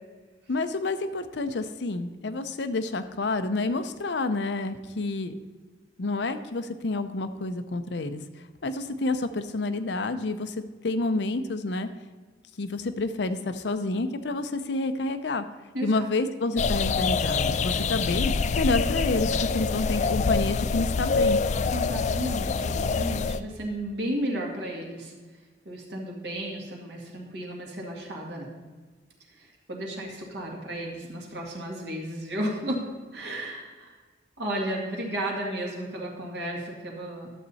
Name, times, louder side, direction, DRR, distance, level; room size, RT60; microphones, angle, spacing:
voice 1, 0.5-5.3 6.0-8.2 8.6-10.5 10.8-11.9 12.6-15.4 15.8-21.4, left 2 dB, 70° left, 11 dB, 0.6 m, -29 dB
voice 2, 15.7-16.1 21.7-25.1 25.7-28.5 29.3-32.9 33.1-34.0 34.4-37.3, right 1 dB, 65° right, -1 dB, 2.2 m, -33 dB
sound 1, 16.6-23.4, left 4 dB, 40° left, 0.3 m, -26 dB
11.5 x 7.3 x 4.1 m, 1.4 s
head